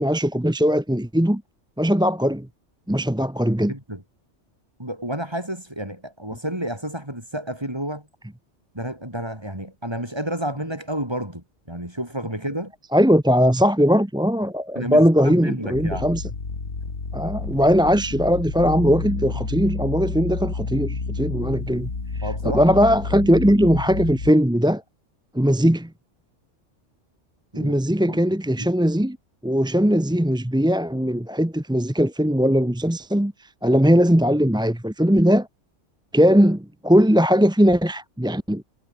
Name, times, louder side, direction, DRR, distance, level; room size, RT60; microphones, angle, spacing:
voice 1, 0.0-1.4 1.8-2.5 2.9-3.7 12.9-16.2 17.1-21.9 22.2-24.8 25.3-25.9 27.5-29.2 29.4-35.5 36.1-38.6, equal, 5° right, 0.8 m, -19 dB
voice 2, 3.7-4.0 4.8-8.1 8.7-12.7 14.8-16.1 22.2-22.8 27.5-27.7 28.1-28.2 28.6-28.7, right 1 dB, 20° right, 5.9 m, -30 dB
sound 1, 15.7-24.3, left 4 dB, 85° left, 3.1 m, -30 dB
omnidirectional pair, 1.2 m